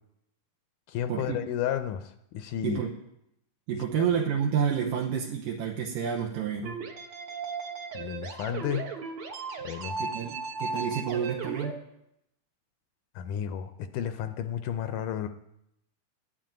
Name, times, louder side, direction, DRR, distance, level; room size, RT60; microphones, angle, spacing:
voice 1, 0.9-2.8 3.9-4.0 7.9-8.9 9.6-10.0 13.2-15.3, left 10 dB, 80° left, 9 dB, 2.0 m, -32 dB
voice 2, 2.6-3.0 3.7-6.8 10.0-11.8, right 7 dB, 80° right, -1 dB, 2.6 m, -29 dB
sound 1, 6.7-11.7, right 4 dB, 50° right, 1.8 m, -36 dB
12.0 x 7.6 x 8.9 m, 0.81 s
omnidirectional pair, 3.9 m